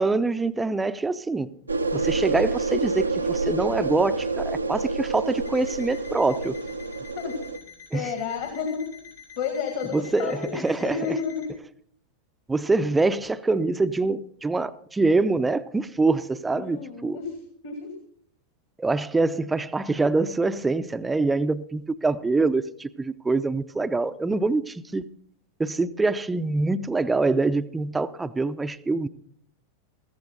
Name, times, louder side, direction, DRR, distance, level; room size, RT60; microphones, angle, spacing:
voice 1, 0.0-1.5 1.9-6.6 7.9-8.1 9.9-11.1 12.5-17.2 18.8-25.1 25.6-29.1, right 3 dB, 10° right, 0.5 m, -25 dB
sound 1, 1.7-7.6, right 3 dB, 80° right, 0.6 m, -28 dB
Alarm, 5.5-11.5, left 7 dB, 85° left, 4.7 m, -48 dB
voice 2, 7.9-8.9 9.4-11.5 16.6-17.3 17.6-17.9, left 6 dB, 55° left, 2.0 m, -31 dB
14.5 x 14.0 x 4.0 m
figure-of-eight pair, 90°, 0 cm